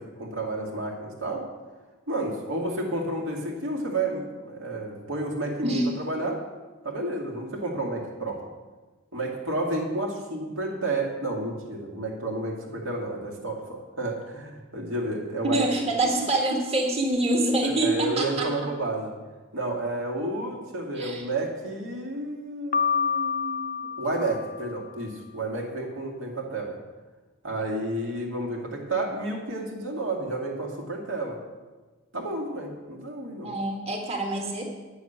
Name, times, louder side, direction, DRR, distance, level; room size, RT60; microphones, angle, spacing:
voice 1, 0.0-1.5 2.1-6.4 6.8-8.4 9.1-15.7 17.7-19.1 19.5-26.8 27.4-31.4 32.1-33.6, right 2 dB, 65° right, -1 dB, 2.4 m, -31 dB
voice 2, 15.4-18.5 20.9-21.2 33.4-34.6, right 2 dB, 30° right, 0 dB, 1.7 m, -25 dB
Piano, 22.7-24.9, left 6 dB, 35° left, 0.4 m, -28 dB
9.6 x 7.0 x 8.2 m, 1.3 s
head